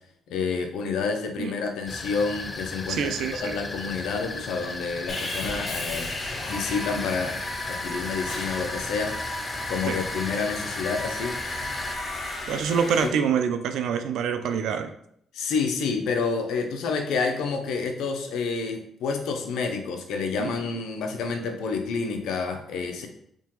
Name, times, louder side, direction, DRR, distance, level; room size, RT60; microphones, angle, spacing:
voice 1, 0.3-3.1 3.4-6.1 6.4-7.4 7.7-9.2 9.7-11.4 12.3-12.5 15.3-23.1, left 5 dB, 85° left, 5 dB, 0.5 m, -29 dB
sound 1, 1.9-12.0, left 2 dB, 25° left, 0.3 m, -36 dB
voice 2, 2.9-3.6 9.9-10.0 12.5-14.9 20.4-20.5, right 7 dB, 80° right, 8 dB, 0.3 m, -26 dB
Sawing, 5.1-13.1, left 1 dB, 40° left, 1.0 m, -34 dB
3.6 x 2.8 x 2.9 m, 0.70 s
cardioid pair, 90°, 0 cm